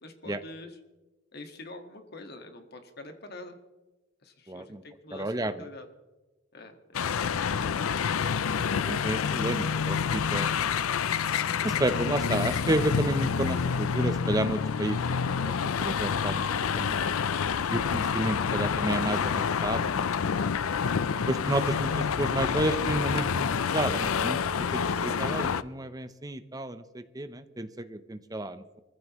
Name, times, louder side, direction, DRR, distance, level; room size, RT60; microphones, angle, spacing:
voice 1, 0.0-0.8 1.3-3.5 4.2-5.9 6.5-7.0 20.9-21.3, left 2 dB, 50° left, 5 dB, 1.8 m, -45 dB
voice 2, 4.5-4.8 5.1-5.6 7.5-7.8 8.4-10.5 11.6-15.0 15.2-15.5 15.8-17.0 17.7-20.0 21.3-24.4 24.7-28.8, right 1 dB, 15° right, 10 dB, 0.7 m, -31 dB
Paris traffic, 6.9-25.6, left 6 dB, 85° left, 0.5 m, -28 dB
24.0 x 15.5 x 3.1 m, 1.1 s
head